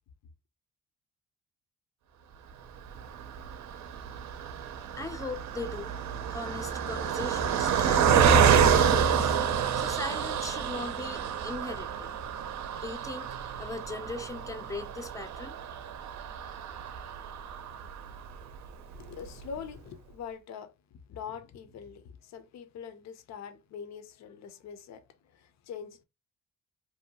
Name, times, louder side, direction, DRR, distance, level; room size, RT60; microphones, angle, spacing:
Car passing by, 2.9-18.4 18.9-19.0 19.3-19.5, right 7 dB, 65° right, 0.5 m, -28 dB
voice 1, 5.0-6.0 6.3-9.4 9.8-12.1 12.8-13.3 13.6-15.6, left 3 dB, 10° left, 0.5 m, -39 dB
voice 2, 18.9-20.7 21.1-25.0 25.3-26.0, left 7 dB, 65° left, 0.5 m, -43 dB
2.6 x 2.2 x 2.8 m
cardioid pair, 90°, 30 cm